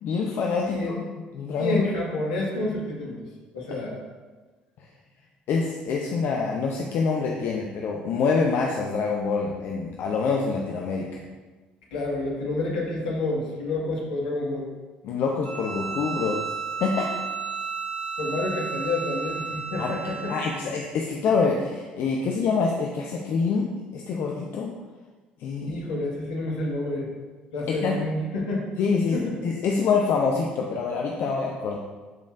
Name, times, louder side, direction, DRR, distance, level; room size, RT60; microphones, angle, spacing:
voice 1, 0.0-1.0 1.3-1.8 5.5-11.2 15.0-16.4 16.8-17.1 19.8-19.9 20.3-24.7 25.4-25.8 27.7-28.0 28.8-31.8, left 5 dB, 55° left, 0 dB, 0.8 m, -26 dB
voice 2, 0.6-0.9 1.6-3.3 3.5-4.0 11.9-14.7 18.2-20.4 25.6-27.1 27.5-28.7 29.1-29.3, left 2 dB, 70° left, -3 dB, 1.8 m, -29 dB
Bowed string instrument, 15.4-20.7, right 5 dB, 85° right, 0.6 m, -33 dB
12.0 x 5.2 x 2.6 m, 1.3 s
figure-of-eight pair, 50°, 4 cm